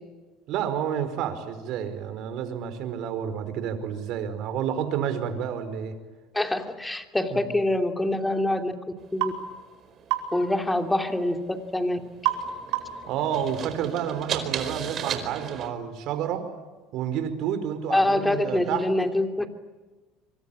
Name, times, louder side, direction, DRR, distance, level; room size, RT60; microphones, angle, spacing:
voice 1, 0.5-6.0 7.3-7.4 13.1-16.5 16.9-18.9, right 9 dB, 60° right, 10 dB, 5.1 m, -30 dB
voice 2, 6.3-8.7 9.1-9.3 10.3-12.0 17.9-19.5, left 1 dB, 10° left, 6 dB, 3.1 m, -25 dB
sound 1, 9.0-15.7, right 8 dB, 45° right, 4.5 m, -37 dB
sound 2, 9.2-9.4 10.1-10.3 12.2-12.5 12.7-13.1, right 14 dB, 80° right, 5.2 m, -26 dB
25.5 x 25.0 x 8.8 m, 1.3 s
supercardioid pair, 100°, 0 cm